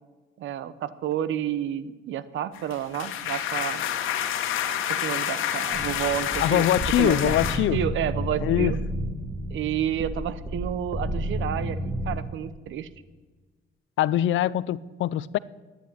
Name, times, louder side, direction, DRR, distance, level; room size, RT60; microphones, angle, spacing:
voice 1, 0.4-3.8 4.9-6.7 7.0-7.4 7.7-8.8 9.5-12.9, right 10 dB, 75° right, 0.9 m, -30 dB
sound 1, 2.6-7.6, left 10 dB, 90° left, 1.4 m, -28 dB
sound 2, 5.7-12.2, right 1 dB, 15° right, 2.0 m, -31 dB
voice 2, 6.4-7.8 8.4-8.7 14.0-15.4, left 13 dB, 75° left, 0.5 m, -23 dB
11.5 x 10.0 x 9.2 m
cardioid pair, 90°, 20 cm